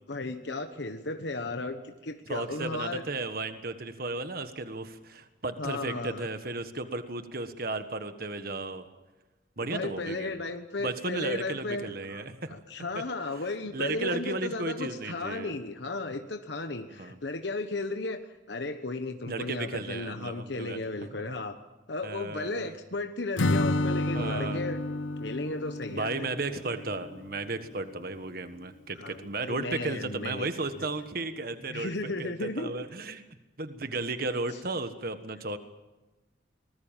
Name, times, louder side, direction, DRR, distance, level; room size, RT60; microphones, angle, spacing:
voice 1, 0.1-3.0 5.6-6.3 9.6-12.2 12.5-18.2 18.5-21.6 21.9-24.8 25.2-26.3 29.0-30.5 30.8-30.9 31.7-32.8, left 2 dB, 65° left, 7 dB, 1.2 m, -35 dB
voice 2, 2.3-8.9 9.6-10.3 10.8-12.6 13.7-15.5 17.0-17.2 19.3-20.8 22.0-22.7 24.1-24.6 25.9-33.2 33.6-35.6, right 3 dB, 50° right, 9 dB, 1.5 m, -34 dB
Acoustic guitar / Strum, 23.4-27.3, left 1 dB, 85° left, 0.8 m, -30 dB
25.0 x 20.0 x 7.4 m, 1.1 s
head